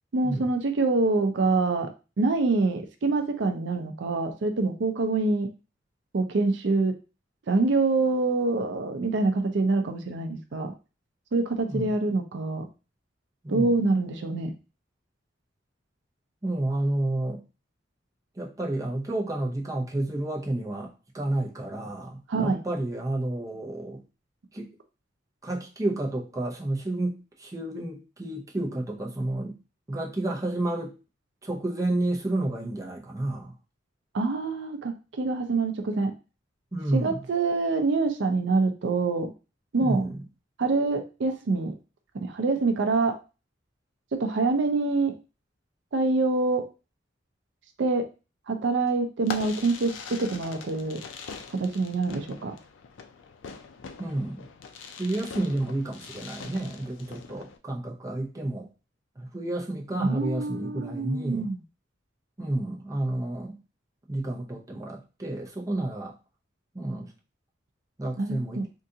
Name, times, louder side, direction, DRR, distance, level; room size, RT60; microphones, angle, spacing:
voice 1, 0.1-1.9 2.2-5.5 6.1-6.9 7.5-10.7 11.3-12.7 13.5-14.5 22.3-22.6 34.1-36.1 36.9-39.3 39.7-40.0 40.6-41.7 42.1-43.2 44.2-45.1 45.9-46.6 47.8-48.0 48.5-51.0 51.5-52.5 60.0-61.6 68.2-68.6, right 3 dB, 65° right, 0.5 m, -25 dB
voice 2, 13.4-13.8 16.4-17.4 18.3-24.0 24.5-24.7 25.4-29.6 29.9-31.0 31.4-33.5 36.7-37.3 39.8-40.2 54.0-54.5 55.0-58.7 59.2-61.5 62.4-63.6 64.1-66.1 66.7-67.1 68.0-68.6, right 1 dB, 15° right, 0.6 m, -30 dB
Fireworks, 49.2-57.6, left 5 dB, 75° left, 0.4 m, -42 dB
3.7 x 2.4 x 2.7 m
head